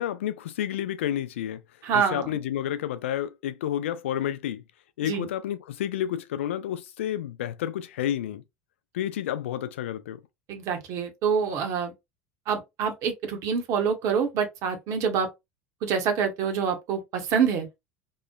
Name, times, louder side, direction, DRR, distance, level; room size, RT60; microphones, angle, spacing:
voice 1, 0.0-1.6 1.9-4.6 5.0-8.4 8.9-10.2, left 11 dB, 65° left, 0.3 m, -30 dB
voice 2, 1.8-2.4 5.0-5.3 10.5-11.9 12.5-15.3 15.8-17.7, right 6 dB, 45° right, 0.7 m, -26 dB
3.0 x 2.0 x 2.2 m
figure-of-eight pair, 70°, 7 cm